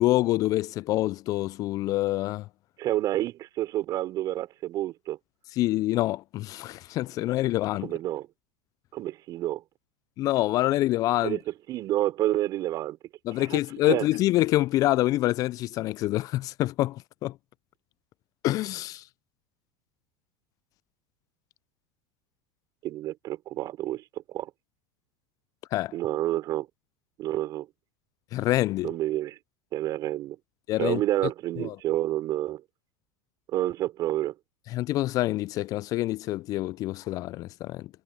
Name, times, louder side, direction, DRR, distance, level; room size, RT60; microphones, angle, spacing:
voice 1, 0.0-2.5 5.6-7.9 10.2-11.4 13.3-17.3 18.4-19.0 25.7-25.9 28.3-28.9 30.7-31.0 31.6-31.8 34.7-37.9, left 16 dB, 45° left, 0.4 m, -26 dB
voice 2, 2.8-5.2 7.8-8.3 8.9-9.6 11.2-13.0 13.4-13.6 13.8-14.1 22.8-24.5 25.9-26.7 27.2-27.7 28.8-29.4 29.7-30.4 30.8-32.6 33.5-34.3, right 14 dB, 50° right, 4.4 m, -29 dB
hypercardioid pair, 95°, 8 cm